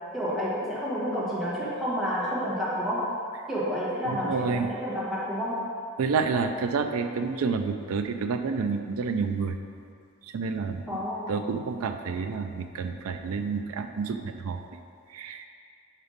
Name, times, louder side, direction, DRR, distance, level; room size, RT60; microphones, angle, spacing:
voice 1, 0.1-3.1 3.5-5.7 10.9-11.4, equal, ahead, -10 dB, 1.4 m, -30 dB
voice 2, 4.0-4.7 6.0-9.5 10.3-10.8 11.3-14.6 15.1-15.5, right 5 dB, 75° right, 6 dB, 0.4 m, -29 dB
5.5 x 4.8 x 5.1 m, 2.4 s
head